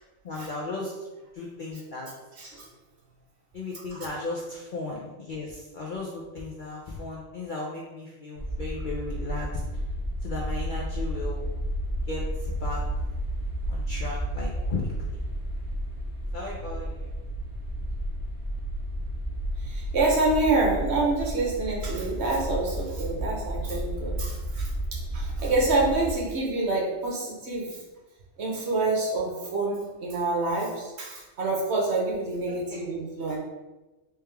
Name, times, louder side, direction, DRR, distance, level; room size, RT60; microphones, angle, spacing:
voice 1, 0.2-0.9 1.3-2.1 3.5-9.5 10.2-11.5 12.1-12.8 13.7-15.2 16.3-17.1 32.5-32.8, left 3 dB, 60° left, -3 dB, 0.5 m, -35 dB
voice 2, 2.4-2.7 3.9-4.1 19.6-24.7 25.1-27.8 28.4-33.4, right 2 dB, 60° right, -3 dB, 1.1 m, -27 dB
sound 1, 8.4-26.1, right 1 dB, 20° right, 0.7 m, -32 dB
3.4 x 3.2 x 3.4 m, 1.1 s
omnidirectional pair, 1.4 m